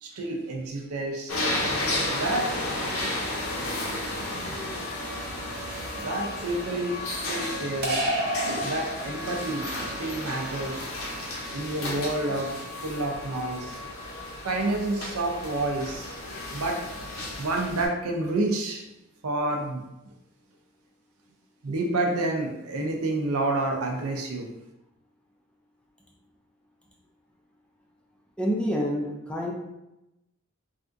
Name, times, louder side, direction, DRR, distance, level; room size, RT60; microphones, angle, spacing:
voice 1, 0.0-1.4 2.1-2.8 5.9-8.0 8.4-9.7 10.0-10.9 11.5-12.6 12.8-13.8 14.4-16.1 16.5-16.9 17.4-18.9 19.2-19.8 21.6-24.5, right 2 dB, 85° right, 1 dB, 0.6 m, -29 dB
sound 1, 1.3-17.9, left 1 dB, 70° left, 0.7 m, -33 dB
sound 2, 7.8-9.5, right 1 dB, 45° right, 0.7 m, -29 dB
voice 2, 28.4-29.5, equal, 5° left, -2 dB, 0.3 m, -27 dB
3.3 x 2.6 x 2.5 m, 0.93 s
head